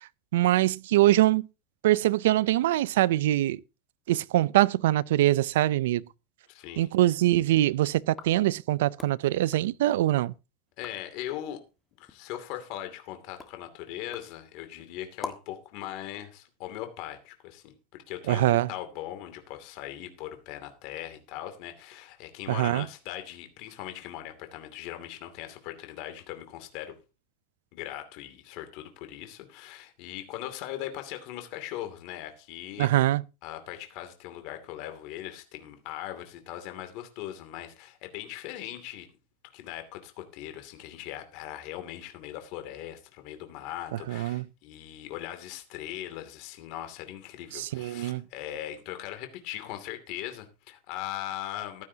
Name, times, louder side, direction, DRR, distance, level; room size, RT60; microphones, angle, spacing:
voice 1, 0.3-1.5 1.8-3.6 4.1-6.0 6.8-10.3 18.3-18.7 22.6-22.9 32.8-33.2 44.1-44.4 47.5-48.2, right 15 dB, 85° right, 0.5 m, -23 dB
voice 2, 6.5-6.9 10.8-11.6 12.0-27.0 27.7-32.9 33.4-39.1 39.5-51.8, left 12 dB, 50° left, 2.6 m, -40 dB
sound 1, 8.0-10.4 10.7-11.2 11.6-15.6, left 4 dB, 15° left, 1.6 m, -47 dB
15.5 x 12.0 x 2.8 m
supercardioid pair, 155°, 0 cm